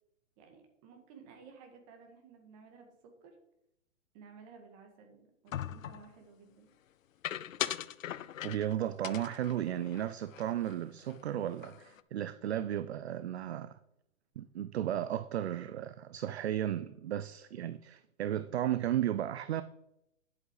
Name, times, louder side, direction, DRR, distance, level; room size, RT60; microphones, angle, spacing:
voice 1, 0.4-3.4 4.1-6.7, right 5 dB, 25° right, 2.0 m, -55 dB
sound 1, 5.5-6.1 7.2-8.7 9.0-10.8 11.1-11.2 11.5-12.0, left 11 dB, 75° left, 0.7 m, -40 dB
voice 2, 8.4-13.8 14.4-19.6, right 11 dB, 55° right, 0.5 m, -34 dB
11.0 x 8.0 x 4.8 m
hypercardioid pair, 160°, 40 cm